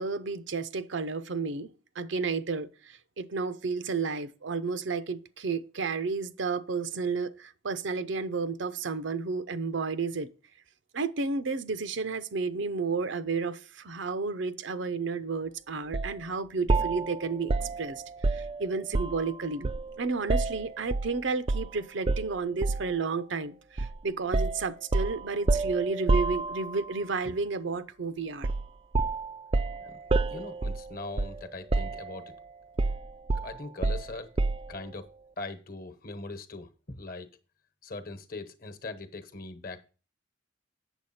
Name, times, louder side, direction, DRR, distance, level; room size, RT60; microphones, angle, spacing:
voice 1, 0.0-1.7 2.0-10.3 10.9-19.7 20.0-28.5, right 4 dB, 70° right, 0.7 m, -32 dB
sound 1, 15.9-16.1 16.7-19.3 19.6-21.1 21.5-21.7 22.1-23.0 23.8-24.0 24.3-26.9 28.4-28.7 28.9-31.4 31.7-32.3 32.8-34.8, right 3 dB, 30° right, 0.4 m, -29 dB
voice 2, 30.3-32.3 33.3-34.3 34.7-35.1 35.4-37.3 37.8-39.9, left 3 dB, 45° left, 1.1 m, -41 dB
8.1 x 7.2 x 4.2 m
head